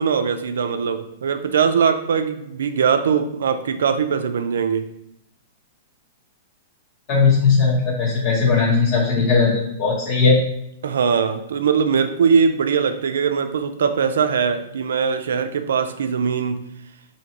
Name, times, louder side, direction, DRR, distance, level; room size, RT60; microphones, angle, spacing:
voice 1, 0.0-4.8 10.8-16.7, right 6 dB, 85° right, 8 dB, 0.4 m, -21 dB
voice 2, 7.1-10.4, left 4 dB, 40° left, -6 dB, 0.9 m, -18 dB
5.2 x 2.8 x 2.9 m, 0.78 s
hypercardioid pair, 145°, 0 cm